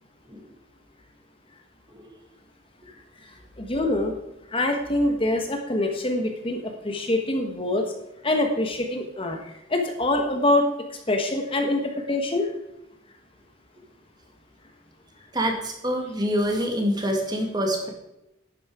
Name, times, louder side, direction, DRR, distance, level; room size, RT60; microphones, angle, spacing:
voice 1, 3.2-4.1 4.5-7.8 8.2-12.5, left 1 dB, 30° left, 4 dB, 1.1 m, -25 dB
voice 2, 15.3-17.9, equal, 20° right, 1 dB, 2.1 m, -26 dB
11.5 x 9.5 x 4.8 m, 0.89 s
head